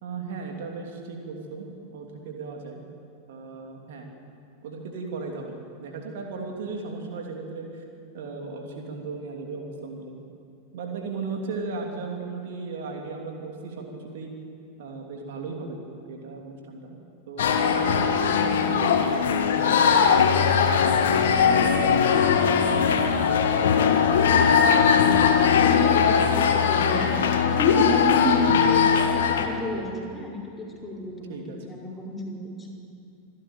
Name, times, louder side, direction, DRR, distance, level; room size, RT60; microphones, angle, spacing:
voice 1, 0.0-2.8 3.3-4.1 4.6-7.8 8.1-10.2 10.7-14.3 14.8-16.9 17.3-21.4 31.3-31.6, right 4 dB, 55° right, 2 dB, 3.0 m, -36 dB
sound 1, 17.4-29.5, left 7 dB, 60° left, 1.8 m, -20 dB
voice 2, 21.1-32.8, equal, 15° left, -2 dB, 4.8 m, -32 dB
26.5 x 12.5 x 9.3 m, 2.5 s
figure-of-eight pair, 90°, 0 cm